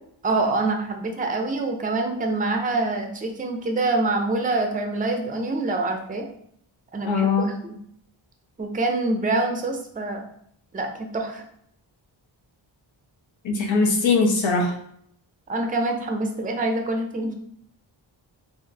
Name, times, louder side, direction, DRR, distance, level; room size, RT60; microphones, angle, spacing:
voice 1, 0.2-6.3 6.9-7.7 8.6-10.2 10.7-11.4 15.5-17.3, right 2 dB, 20° right, 4 dB, 0.5 m, -25 dB
voice 2, 7.0-7.5 13.4-14.7, left 4 dB, 75° left, 0 dB, 0.9 m, -21 dB
3.8 x 2.5 x 2.8 m, 0.68 s
wide cardioid pair, 85°, 46 cm